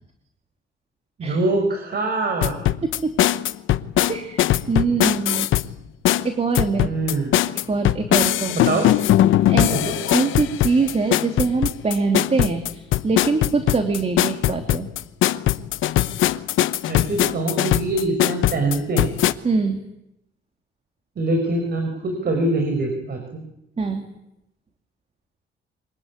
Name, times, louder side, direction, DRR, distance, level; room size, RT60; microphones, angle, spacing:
voice 1, 1.2-2.6 6.8-7.3 8.5-8.9 9.7-10.0 16.9-19.1 21.2-23.4, right 2 dB, 55° right, 5 dB, 5.4 m, -24 dB
sound 1, 2.4-5.7 6.0-19.3, left 13 dB, 85° left, 0.9 m, -20 dB
voice 2, 4.1-5.5 6.2-6.9 7.7-8.6 9.5-9.7 10.1-14.9 19.4-19.8 23.8-24.0, right 4 dB, 30° right, 5 dB, 2.9 m, -23 dB
25.0 x 19.0 x 9.8 m, 0.84 s
cardioid pair, 90°, 20 cm